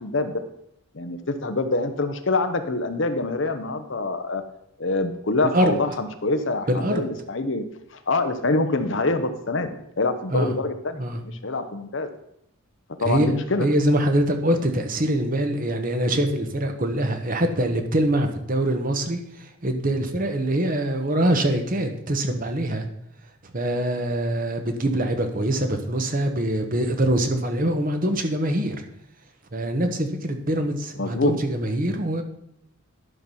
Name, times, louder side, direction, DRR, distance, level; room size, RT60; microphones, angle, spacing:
voice 1, 0.0-0.4 0.9-4.4 4.8-7.6 7.9-9.7 10.0-12.1 13.0-13.7 31.0-31.4, left 2 dB, 55° left, 9 dB, 0.9 m, -25 dB
voice 2, 6.7-7.1 10.3-10.5 10.9-11.2 13.0-22.8 23.5-28.8 29.5-32.2, right 1 dB, 40° right, 6 dB, 1.1 m, -24 dB
11.0 x 6.0 x 5.5 m, 0.76 s
head